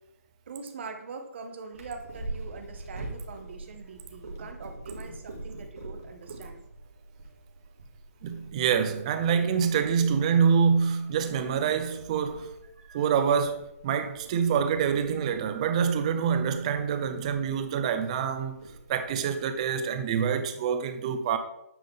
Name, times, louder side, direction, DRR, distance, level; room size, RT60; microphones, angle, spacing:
voice 1, 0.5-6.6 12.8-13.1, right 4 dB, 45° right, 0.9 m, -43 dB
Purr, 1.7-19.7, right 2 dB, 70° right, 2.1 m, -45 dB
voice 2, 8.2-12.5 12.9-18.6 18.9-21.4, right 7 dB, 25° right, 0.4 m, -26 dB
8.6 x 3.7 x 3.6 m
hypercardioid pair, 155°, 8 cm